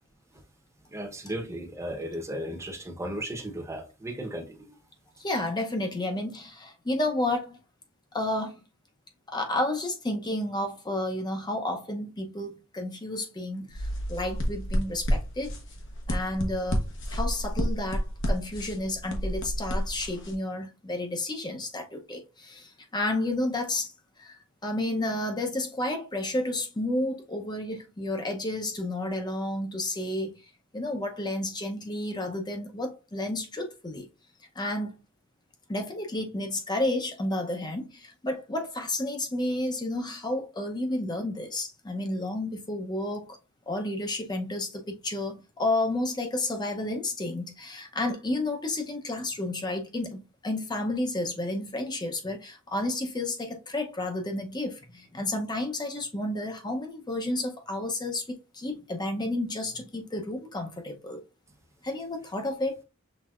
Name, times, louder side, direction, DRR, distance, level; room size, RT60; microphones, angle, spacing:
voice 1, 0.9-4.8, right 1 dB, 15° right, 0.9 m, -35 dB
voice 2, 5.2-7.6 8.1-8.6 9.3-15.5 16.1-16.8 17.1-23.9 24.2-24.3 24.6-30.3 30.7-34.1 34.6-35.0 35.7-43.4 43.7-61.2 61.8-62.8, left 1 dB, 20° left, 0.7 m, -31 dB
sound 1, 13.7-20.3, equal, 65° left, 1.1 m, -30 dB
6.0 x 3.4 x 2.4 m
head